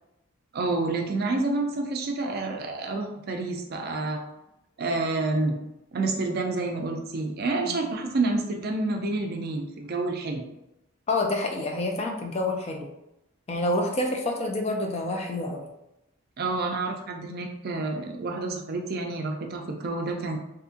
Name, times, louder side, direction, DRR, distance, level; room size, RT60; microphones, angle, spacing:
voice 1, 0.5-4.2 4.8-5.5 5.9-10.4 16.4-20.4, right 3 dB, 45° right, 3 dB, 0.4 m, -28 dB
voice 2, 11.1-12.9 13.5-15.7, left 2 dB, 30° left, 2 dB, 0.4 m, -28 dB
2.7 x 2.5 x 2.5 m, 0.88 s
head